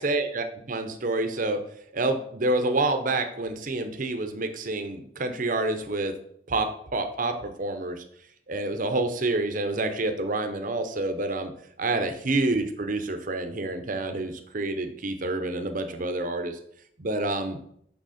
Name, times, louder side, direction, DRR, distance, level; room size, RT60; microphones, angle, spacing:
voice 1, 0.0-1.6 1.9-6.1 6.5-8.0 8.5-11.5 11.8-16.6 17.0-17.6, right 2 dB, 45° right, 7 dB, 0.8 m, -28 dB
6.3 x 6.1 x 4.2 m, 0.69 s
head